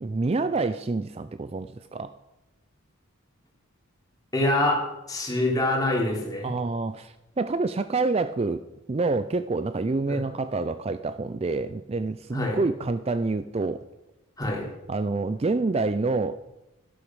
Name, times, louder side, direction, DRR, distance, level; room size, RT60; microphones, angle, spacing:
voice 1, 0.0-2.1 6.4-8.6 8.9-13.8 14.9-16.3, right 3 dB, 25° right, 12 dB, 0.4 m, -27 dB
voice 2, 4.3-6.5 10.1-10.2 12.3-12.6 14.4-14.7, left 1 dB, 15° left, -1 dB, 3.2 m, -25 dB
12.0 x 12.0 x 6.2 m, 0.98 s
head